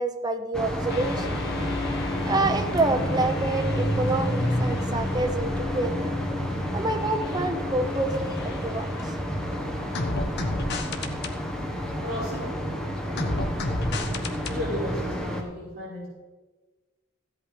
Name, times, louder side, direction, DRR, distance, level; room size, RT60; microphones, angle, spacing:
voice 1, 0.0-1.4 2.2-6.1 6.7-9.1, right 2 dB, 20° right, 6 dB, 0.8 m, -28 dB
sound 1, 0.5-15.4, equal, 5° left, 1.2 m, -30 dB
sound 2, 0.9-9.4 9.9-11.3 13.2-14.6, left 2 dB, 50° left, 1.1 m, -32 dB
voice 2, 12.0-12.6 14.5-16.1, left 1 dB, 35° right, -11 dB, 4.7 m, -34 dB
14.5 x 8.4 x 5.1 m, 1.3 s
head